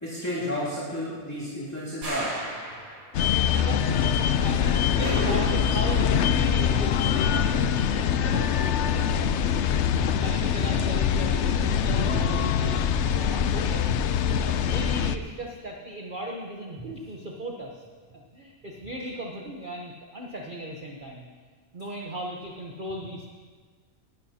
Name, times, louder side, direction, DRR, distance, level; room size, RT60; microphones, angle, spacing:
voice 1, 0.0-2.3 4.3-4.5 5.0-5.4, left 1 dB, 10° left, -8 dB, 2.4 m, -31 dB
sound 1, 2.0-3.5, right 1 dB, 75° right, 3.7 m, -36 dB
sound 2, 3.1-15.2, left 8 dB, 65° left, 0.7 m, -24 dB
voice 2, 3.3-9.5 9.7-12.8 13.1-13.9 14.4-17.8 18.1-21.3 21.7-23.3, right 1 dB, 40° right, 0 dB, 1.0 m, -37 dB
19.5 x 12.5 x 2.8 m, 1.5 s
omnidirectional pair, 1.5 m